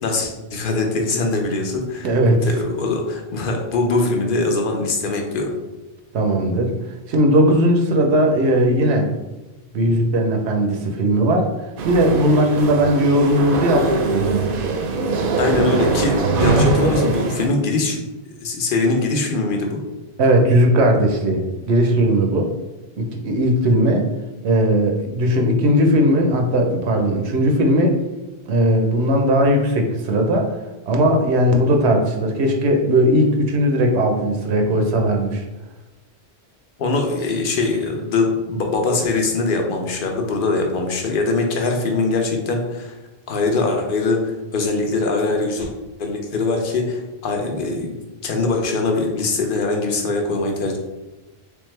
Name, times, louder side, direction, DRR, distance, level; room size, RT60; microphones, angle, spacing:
voice 1, 0.0-2.1 2.5-5.5 15.4-18.0 18.3-19.8 36.8-43.0 43.3-45.7 46.0-47.9 48.2-50.8, left 3 dB, 60° left, 2 dB, 0.8 m, -22 dB
voice 2, 2.0-2.5 6.1-6.7 7.1-9.1 9.7-11.5 11.8-14.3 15.7-15.8 16.6-16.7 20.2-22.5 23.0-24.1 24.4-28.0 28.5-30.6 30.9-35.4, equal, 90° right, 3 dB, 1.0 m, -18 dB
sound 1, 11.8-17.5, right 4 dB, 65° right, 0.7 m, -22 dB
3.5 x 3.4 x 3.2 m, 1.1 s
omnidirectional pair, 1.1 m